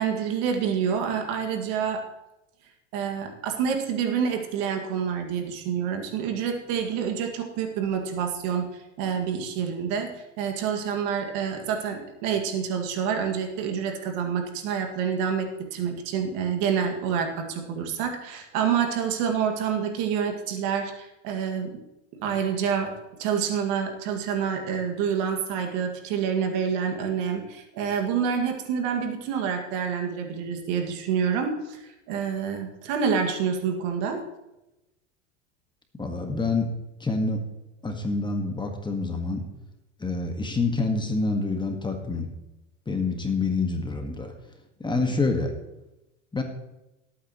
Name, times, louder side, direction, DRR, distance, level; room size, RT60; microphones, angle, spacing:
voice 1, 0.0-2.0 2.9-21.8 22.2-22.9 23.2-34.2, right 7 dB, 55° right, 3 dB, 2.1 m, -27 dB
voice 2, 36.0-36.7 37.0-37.4 37.8-39.4 40.0-42.3 42.9-44.3 44.8-45.5 46.3-46.4, left 3 dB, 10° left, 4 dB, 1.6 m, -27 dB
18.5 x 8.8 x 3.1 m, 0.96 s
hypercardioid pair, 105°, 37 cm